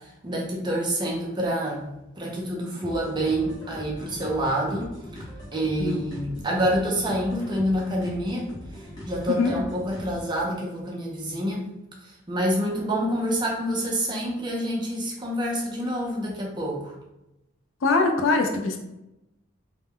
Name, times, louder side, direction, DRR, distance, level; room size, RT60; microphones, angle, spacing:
voice 1, 0.2-4.9 5.5-8.5 9.1-11.7 12.3-16.9, equal, 20° right, -2 dB, 0.4 m, -27 dB
sound 1, 2.8-10.4, equal, 20° left, 0.6 m, -41 dB
voice 2, 17.8-18.8, left 3 dB, 70° left, 4 dB, 0.4 m, -22 dB
2.1 x 2.0 x 3.5 m, 0.91 s
head